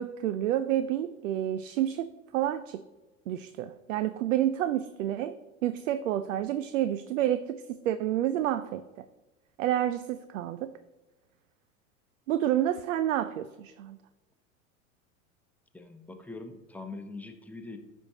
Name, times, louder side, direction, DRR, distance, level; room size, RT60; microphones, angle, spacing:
voice 1, 0.0-2.8 3.3-5.4 5.6-9.1 9.6-10.7 12.3-14.0, right 12 dB, 70° right, 14 dB, 0.5 m, -29 dB
voice 2, 15.7-17.8, left 3 dB, 5° left, 5 dB, 0.7 m, -42 dB
14.0 x 5.4 x 2.8 m, 1.1 s
figure-of-eight pair, 85°, 41 cm